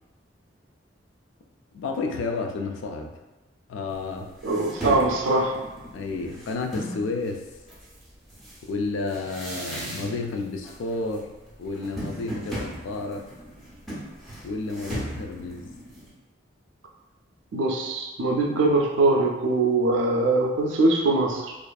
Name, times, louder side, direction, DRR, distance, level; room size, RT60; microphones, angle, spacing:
voice 1, 1.7-3.1 3.7-4.3 5.9-7.5 8.7-11.3 11.6-13.2 14.4-15.7, left 3 dB, 75° left, 3 dB, 0.3 m, -31 dB
sound 1, 3.9-4.0 4.4-7.1 7.7-10.4 10.6-11.2 11.4-16.1, right 1 dB, ahead, 0.5 m, -36 dB
voice 2, 4.4-5.5 17.5-21.6, right 2 dB, 80° right, 2 dB, 0.4 m, -22 dB
2.4 x 2.4 x 2.2 m, 1.1 s
head